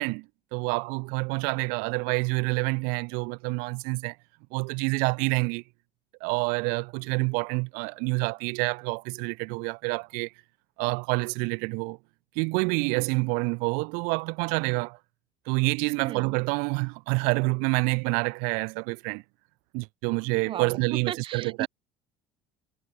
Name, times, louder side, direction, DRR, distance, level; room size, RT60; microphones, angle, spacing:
voice 1, 0.0-4.1 4.5-5.6 6.2-10.3 10.8-12.0 12.3-15.0 15.5-19.2 19.7-21.7, right 33 dB, 90° right, 3.2 m, -27 dB
voice 2, 16.0-16.3 20.5-20.8 21.1-21.7, right 10 dB, 40° right, 2.2 m, -35 dB
cardioid pair, 155°, 14 cm